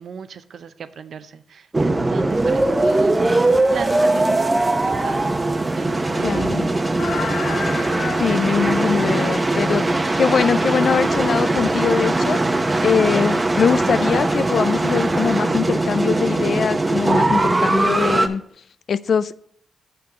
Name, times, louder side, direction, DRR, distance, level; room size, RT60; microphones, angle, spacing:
voice 1, 0.0-3.1 3.4-6.9 7.2-7.3, right 7 dB, 70° right, 0.5 m, -36 dB
sound 1, 1.7-18.3, right 2 dB, 25° right, 0.7 m, -20 dB
Trumpet, 3.6-10.9, right 1 dB, 10° right, 1.4 m, -38 dB
voice 2, 6.2-6.7 8.2-12.4 12.8-18.4 18.9-19.4, left 6 dB, 65° left, 0.3 m, -22 dB
sound 2, 7.0-15.4, left 5 dB, 85° left, 0.8 m, -35 dB
6.5 x 5.9 x 5.9 m
cardioid pair, 75°, 0 cm